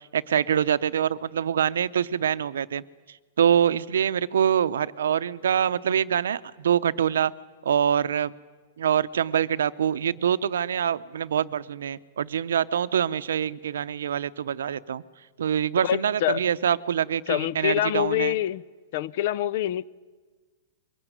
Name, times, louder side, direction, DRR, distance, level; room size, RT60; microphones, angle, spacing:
voice 1, 0.1-2.8 3.4-7.3 7.6-8.3 8.8-15.0 15.4-18.4, right 8 dB, 90° right, 0.7 m, -25 dB
voice 2, 15.8-16.4 17.3-18.6 18.9-19.8, left 12 dB, 60° left, 0.6 m, -26 dB
22.5 x 17.5 x 9.3 m
hypercardioid pair, 145°, 0 cm